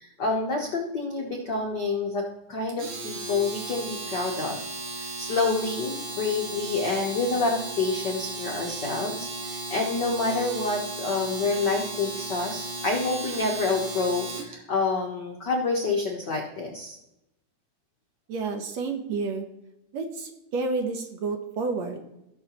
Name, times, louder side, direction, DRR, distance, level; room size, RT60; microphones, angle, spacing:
voice 1, 0.0-4.7 5.0-17.0, left 3 dB, 80° left, 0 dB, 0.9 m, -28 dB
Domestic sounds home sounds, 2.7-14.5, right 2 dB, 50° right, 2.3 m, -35 dB
voice 2, 18.3-19.5 19.9-22.1, right 4 dB, 65° right, 5 dB, 1.9 m, -30 dB
17.5 x 6.3 x 3.0 m, 0.88 s
omnidirectional pair, 3.7 m